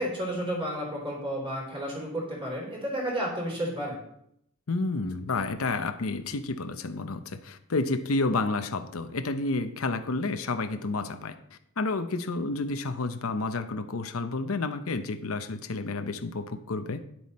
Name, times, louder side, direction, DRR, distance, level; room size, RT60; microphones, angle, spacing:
voice 1, 0.0-4.0, equal, 25° right, -2 dB, 3.6 m, -32 dB
voice 2, 4.7-11.4 11.8-17.0, left 3 dB, 85° left, 9 dB, 0.8 m, -30 dB
10.5 x 7.7 x 4.2 m, 0.74 s
head